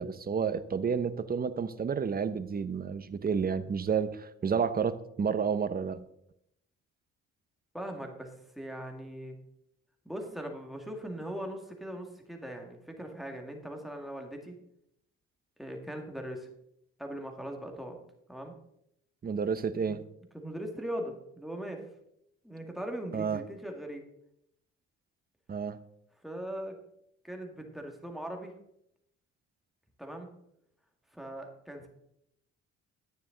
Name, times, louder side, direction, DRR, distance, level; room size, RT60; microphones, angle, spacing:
voice 1, 0.0-6.0 19.2-20.0 23.1-23.4 25.5-25.8, right 6 dB, 30° right, 13 dB, 0.7 m, -30 dB
voice 2, 7.7-8.3 8.6-9.4 10.1-14.6 15.6-16.5 17.0-18.0 18.3-18.5 20.3-21.8 22.4-24.0 26.2-26.8 27.2-28.5 30.0-30.3 31.1-31.9, right 1 dB, ahead, 2 dB, 2.0 m, -40 dB
10.5 x 9.5 x 3.9 m, 0.77 s
cardioid pair, 90°, 30 cm